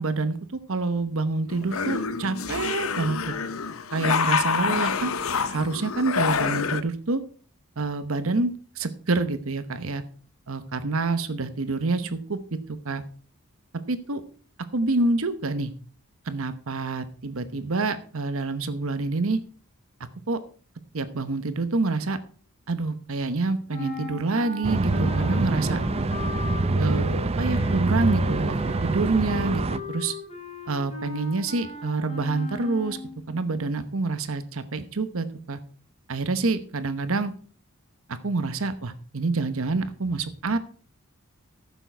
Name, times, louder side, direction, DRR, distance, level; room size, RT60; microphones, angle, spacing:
voice 1, 0.0-3.3 3.9-5.1 5.5-7.2 7.8-10.0 10.5-12.6 12.8-13.0 13.9-14.2 14.7-15.7 16.3-19.4 20.3-20.4 20.9-22.2 22.7-25.8 26.8-30.2 30.7-33.0 33.3-35.6 36.1-37.3 38.1-40.6, right 3 dB, 65° right, 11 dB, 0.9 m, -27 dB
sound 1, 1.5-6.8, left 5 dB, 65° left, 0.8 m, -27 dB
sound 2, 23.7-33.2, left 2 dB, 25° left, 3.2 m, -37 dB
sound 3, 24.6-29.8, right 2 dB, 25° right, 0.5 m, -25 dB
14.5 x 7.2 x 4.5 m, 0.43 s
head